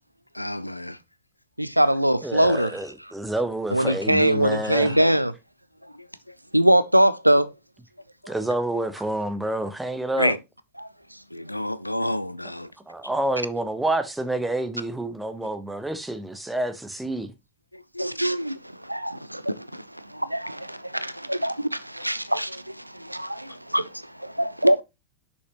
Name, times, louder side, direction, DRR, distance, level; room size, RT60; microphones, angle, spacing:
voice 1, 0.4-1.0 10.2-10.4 11.3-12.7 18.0-18.1, left 1 dB, 85° left, 0.4 m, -28 dB
voice 2, 1.6-2.7 3.7-5.3 6.5-7.5 10.8-10.9 18.0-24.8, right 1 dB, 90° right, 0.4 m, -23 dB
voice 3, 2.2-4.9 8.3-10.4 12.9-17.3, right 1 dB, 5° right, 0.9 m, -28 dB
6.4 x 5.5 x 2.9 m
figure-of-eight pair, 90°, 0 cm